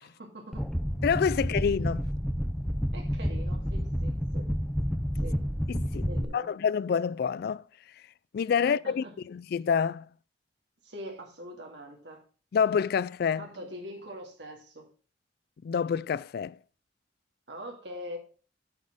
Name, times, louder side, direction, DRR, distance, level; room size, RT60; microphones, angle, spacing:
voice 1, 0.0-0.7 2.9-4.5 5.2-5.4 6.0-6.5 8.6-9.1 10.8-12.2 13.4-14.9 17.5-18.2, equal, 70° right, 2.3 m, -43 dB
sound 1, 0.5-6.2, equal, ahead, 0.5 m, -30 dB
voice 2, 1.0-2.0 5.7-6.1 6.3-7.6 8.3-10.1 12.5-13.5 15.6-16.6, left 6 dB, 60° left, 0.3 m, -27 dB
8.5 x 4.2 x 6.6 m
head